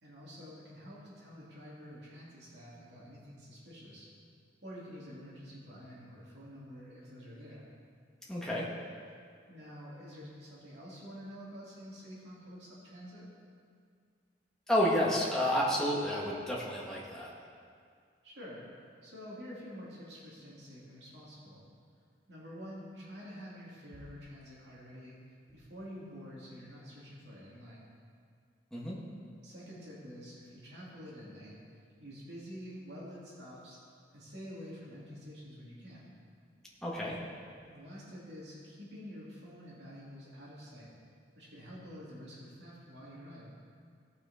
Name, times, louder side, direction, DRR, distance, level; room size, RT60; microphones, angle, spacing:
voice 1, 0.0-4.1 4.6-7.6 9.5-13.2 18.2-18.6 19.0-21.6 22.3-25.2 25.5-27.8 29.4-31.6 32.0-33.8 34.1-36.0 37.7-40.9 41.4-43.5, equal, 65° right, -6 dB, 2.7 m, -48 dB
voice 2, 8.3-8.7 14.7-17.3 28.7-29.0 36.8-37.2, equal, 5° left, -6 dB, 1.4 m, -30 dB
17.0 x 6.0 x 4.3 m, 2.2 s
head